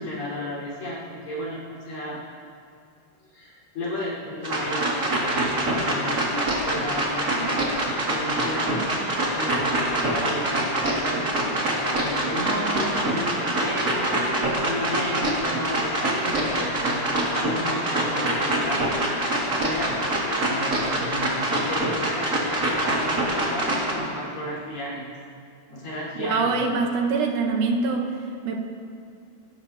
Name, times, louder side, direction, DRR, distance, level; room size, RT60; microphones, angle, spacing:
voice 1, 0.0-1.6 1.9-2.2 3.3-7.5 8.1-8.9 9.3-18.9 19.2-25.1 25.7-26.5, left 1 dB, 80° left, -7 dB, 6.2 m, -33 dB
sound 1, 4.4-23.9, right 1 dB, 25° right, 2.1 m, -25 dB
voice 2, 26.2-28.1 28.4-28.6, right 4 dB, 70° right, 3 dB, 2.4 m, -24 dB
27.0 x 14.0 x 2.8 m, 2.3 s
omnidirectional pair, 3.9 m